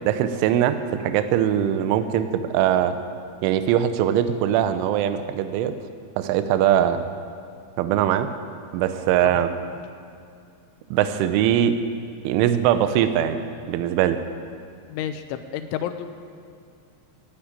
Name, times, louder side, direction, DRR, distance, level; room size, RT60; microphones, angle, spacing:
voice 1, 0.1-2.9 3.4-5.8 6.2-7.0 7.8-8.3 8.7-9.5 10.9-11.7 12.2-13.4 13.7-14.2, right 10 dB, 80° right, 10 dB, 3.0 m, -21 dB
voice 2, 14.9-16.1, left 10 dB, 85° left, 10 dB, 2.9 m, -30 dB
12.5 x 9.8 x 8.9 m, 2.4 s
omnidirectional pair, 5.8 m